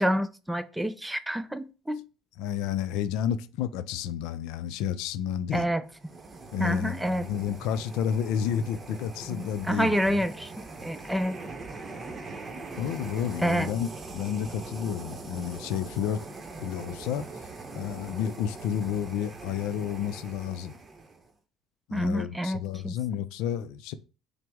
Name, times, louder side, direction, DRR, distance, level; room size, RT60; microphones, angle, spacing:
voice 1, 0.0-2.0 5.5-5.8 6.6-7.2 9.3-10.5 10.8-11.4 13.4-13.7 21.9-22.9, equal, 5° right, 0.4 m, -28 dB
voice 2, 2.4-5.7 6.5-10.2 12.8-16.2 16.6-17.3 17.7-20.7 21.9-23.9, left 9 dB, 80° left, 0.4 m, -31 dB
sound 1, 5.9-21.3, right 3 dB, 30° right, 0.7 m, -42 dB
5.9 x 2.0 x 3.5 m
cardioid pair, 110°, 0 cm